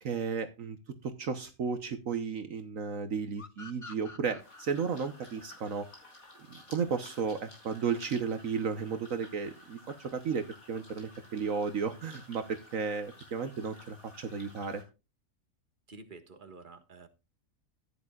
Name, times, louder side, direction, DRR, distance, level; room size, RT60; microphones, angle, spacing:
voice 1, 0.0-0.8 1.0-5.9 6.5-14.8, right 6 dB, 65° right, 8 dB, 1.4 m, -34 dB
sound 1, 3.4-6.7, left 3 dB, 25° left, 0.9 m, -50 dB
sound 2, 4.4-14.8, left 1 dB, 80° left, 5.7 m, -54 dB
voice 2, 15.9-17.1, right 3 dB, 35° right, 7 dB, 1.8 m, -50 dB
15.5 x 10.5 x 2.4 m, 0.28 s
omnidirectional pair, 1.5 m